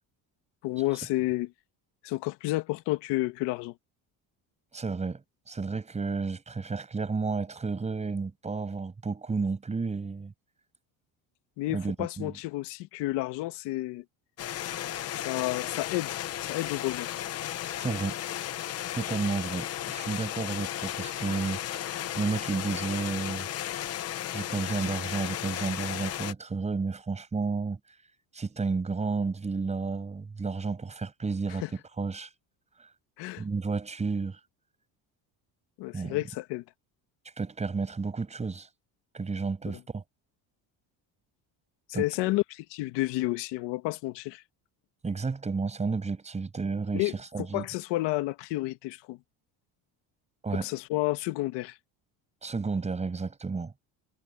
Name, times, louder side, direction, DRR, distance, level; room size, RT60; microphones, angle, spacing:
voice 1, 0.6-1.5 2.0-3.7 11.6-14.0 15.2-17.1 31.5-31.7 33.2-33.4 35.8-36.6 41.9-44.4 46.9-47.1 47.5-49.2 50.5-51.8, left 19 dB, 90° left, 1.7 m, -31 dB
voice 2, 4.7-10.3 11.7-12.3 17.8-18.2 18.9-21.9 22.1-23.8 24.3-27.8 28.3-32.3 33.4-34.4 35.9-36.2 37.4-38.7 39.1-40.0 41.9-42.0 45.0-47.6 50.4-50.7 52.4-53.7, right 4 dB, 15° right, 6.3 m, -32 dB
sound 1, 14.4-26.3, left 12 dB, 40° left, 0.7 m, -35 dB
cardioid pair, 175°, 41 cm